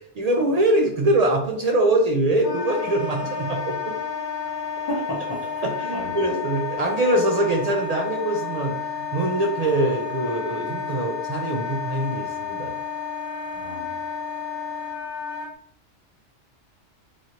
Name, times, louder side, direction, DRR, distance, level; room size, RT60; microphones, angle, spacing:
voice 1, 0.2-3.9 5.6-12.7, right 1 dB, 75° right, 1 dB, 0.3 m, -23 dB
Wind instrument woodwind instrument, 2.4-15.5, left 7 dB, 85° left, 1.1 m, -31 dB
voice 2, 4.9-5.6 5.9-6.3 13.5-13.9, equal, 25° left, -7 dB, 0.7 m, -32 dB
3.0 x 2.5 x 2.8 m, 0.63 s
omnidirectional pair, 1.2 m